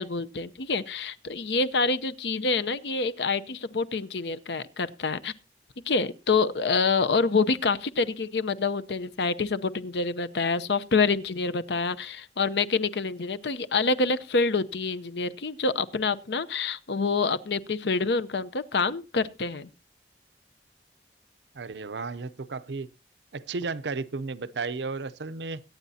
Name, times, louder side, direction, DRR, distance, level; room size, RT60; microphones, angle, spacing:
voice 1, 0.0-5.3 5.9-19.7, left 4 dB, 80° left, 0.7 m, -27 dB
voice 2, 21.5-22.9 23.3-25.6, right 4 dB, 80° right, 0.6 m, -33 dB
23.0 x 9.2 x 2.8 m
head